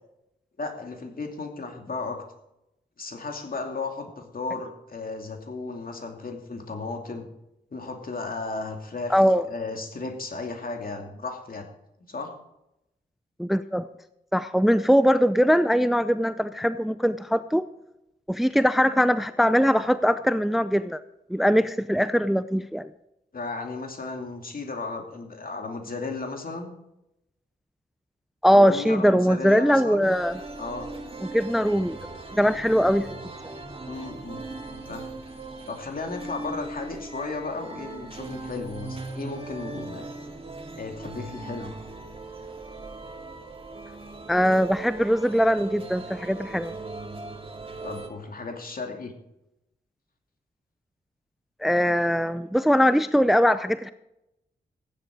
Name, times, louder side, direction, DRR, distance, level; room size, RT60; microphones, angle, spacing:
voice 1, 0.6-2.2 3.0-7.3 7.7-9.2 9.5-11.7 12.1-12.3 23.3-26.7 28.5-30.1 30.6-30.9 33.9-34.5 34.9-35.1 35.7-40.1 40.8-41.7 47.8-49.1, left 3 dB, 50° left, 3 dB, 2.7 m, -34 dB
voice 2, 9.1-9.5 13.4-13.9 14.3-17.6 18.3-21.0 21.3-22.9 28.4-30.4 31.3-32.0 32.3-33.1 44.3-46.7 51.6-53.9, equal, ahead, 13 dB, 0.6 m, -21 dB
sound 1, 30.0-48.1, right 3 dB, 30° right, 2.6 m, -39 dB
15.0 x 10.0 x 4.9 m, 0.87 s
cardioid pair, 45°, 18 cm